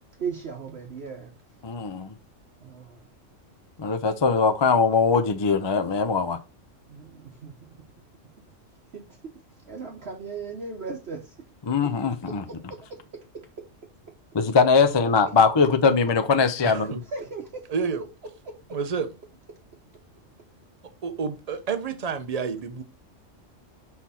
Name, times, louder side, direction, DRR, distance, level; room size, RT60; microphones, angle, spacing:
voice 1, 0.2-1.3 2.6-3.0 6.9-7.5 8.9-9.0 9.7-11.3 11.8-11.9 12.3-13.0 17.0-17.6 18.4-18.8, right 5 dB, 55° right, 1.2 m, -37 dB
voice 2, 1.6-2.1 3.8-6.4 11.7-12.4 14.3-17.0, left 5 dB, 40° left, 0.4 m, -21 dB
voice 3, 16.6-17.0 17.7-18.0 18.7-19.1 21.0-22.8, right 5 dB, 35° right, 0.7 m, -29 dB
5.7 x 4.6 x 4.2 m
omnidirectional pair, 1.3 m